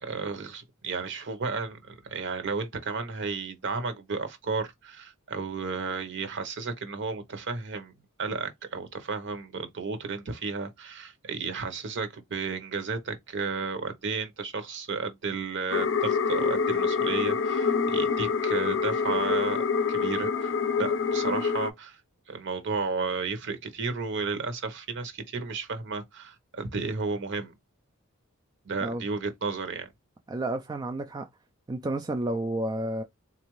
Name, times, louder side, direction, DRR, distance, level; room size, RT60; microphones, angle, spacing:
voice 1, 0.0-7.9 8.2-19.6 19.9-22.0 22.3-27.5 28.6-29.9, right 4 dB, 55° right, 0.9 m, -33 dB
sound 1, 15.7-21.7, left 5 dB, 60° left, 0.6 m, -26 dB
voice 2, 30.3-31.3 31.7-33.0, right 1 dB, 20° right, 0.3 m, -31 dB
4.0 x 2.5 x 3.0 m
head